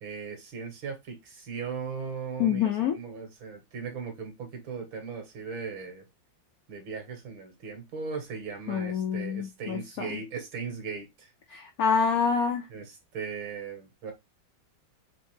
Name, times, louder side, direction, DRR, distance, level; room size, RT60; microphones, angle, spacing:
voice 1, 0.0-6.1 6.7-11.3 12.7-14.1, right 5 dB, 75° right, 2.1 m, -38 dB
voice 2, 2.4-3.0 8.7-10.1 11.5-12.6, left 6 dB, 75° left, 0.8 m, -26 dB
4.1 x 3.2 x 3.1 m
omnidirectional pair, 2.2 m